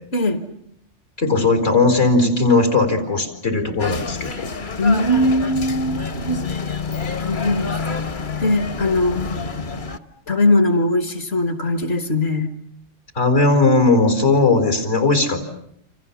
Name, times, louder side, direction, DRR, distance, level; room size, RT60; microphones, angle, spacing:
voice 1, 0.1-0.4 4.8-6.4 7.2-8.0 8.4-9.2 10.3-12.5, left 1 dB, 55° left, 7 dB, 1.9 m, -20 dB
voice 2, 1.2-4.5 13.2-15.4, left 3 dB, 75° left, 7 dB, 4.6 m, -17 dB
sound 1, 3.8-10.0, left 5 dB, 40° left, 1.3 m, -28 dB
28.5 x 27.5 x 7.2 m, 0.72 s
omnidirectional pair, 1.3 m